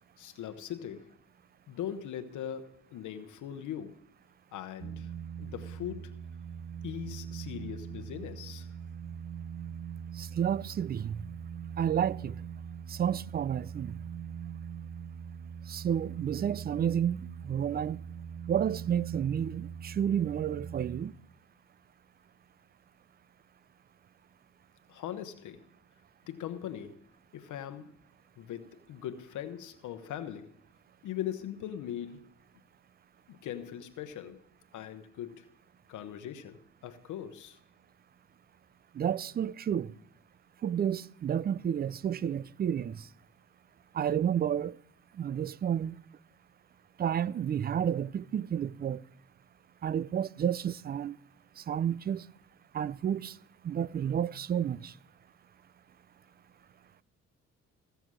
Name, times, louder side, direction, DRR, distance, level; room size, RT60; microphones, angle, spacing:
voice 1, 0.2-1.2 1.7-4.0 4.5-5.1 5.4-6.2 6.8-8.8 24.9-25.7 26.3-28.0 28.4-30.5 31.0-32.3 33.3-34.4 34.7-35.5 35.9-37.6, left 10 dB, 80° left, 0.9 m, -40 dB
sound 1, 4.8-21.0, right 7 dB, 65° right, 1.1 m, -42 dB
voice 2, 10.2-11.2 11.8-12.4 12.9-13.9 15.7-18.0 18.5-21.1 39.0-39.9 40.6-42.9 43.9-44.7 45.2-46.0 47.0-49.0 49.8-51.2 51.7-52.2 52.7-53.3 53.6-54.9, right 9 dB, 30° right, 0.4 m, -31 dB
16.0 x 6.9 x 6.1 m
cardioid pair, 90°, 30 cm